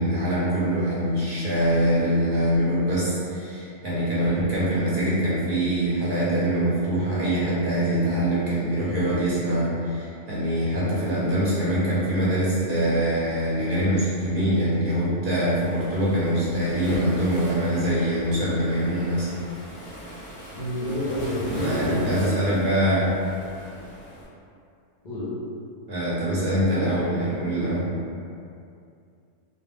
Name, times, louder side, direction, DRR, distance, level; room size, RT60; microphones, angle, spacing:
voice 1, 0.0-19.3 21.5-23.1 25.9-27.8, equal, 55° right, -8 dB, 0.6 m, -24 dB
Waves surf, 15.5-24.2, equal, 15° right, 0.6 m, -40 dB
voice 2, 20.6-22.2 23.4-23.6 25.0-25.4, left 1 dB, 50° left, -9 dB, 0.5 m, -29 dB
2.2 x 2.1 x 3.1 m, 2.5 s
omnidirectional pair, 1.3 m